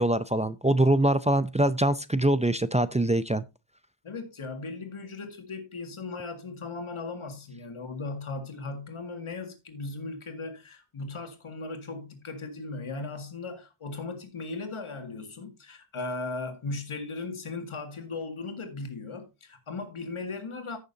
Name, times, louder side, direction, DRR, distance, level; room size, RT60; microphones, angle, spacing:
voice 1, 0.0-3.4, right 1 dB, 15° right, 0.5 m, -23 dB
voice 2, 4.0-20.8, left 3 dB, 85° left, 2.0 m, -37 dB
14.5 x 6.6 x 2.7 m
wide cardioid pair, 75°, 49 cm